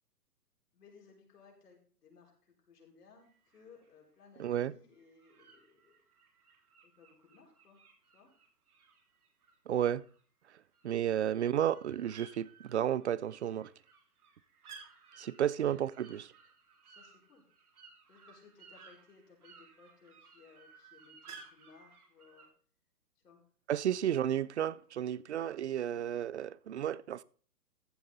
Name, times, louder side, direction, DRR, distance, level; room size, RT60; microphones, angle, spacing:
voice 1, 0.7-6.0 6.8-7.8 8.1-8.3 15.6-15.8 16.9-17.4 18.1-22.5 23.2-23.4, left 5 dB, 70° left, 5.3 m, -61 dB
sound 1, 3.2-3.9 4.9-10.2 10.5-22.5, right 5 dB, 60° right, 3.5 m, -58 dB
voice 2, 4.4-4.7 9.7-10.0 10.8-13.7 15.2-16.3 23.7-27.2, right 10 dB, 45° right, 0.5 m, -32 dB
15.0 x 8.7 x 4.1 m
hypercardioid pair, 150°, 49 cm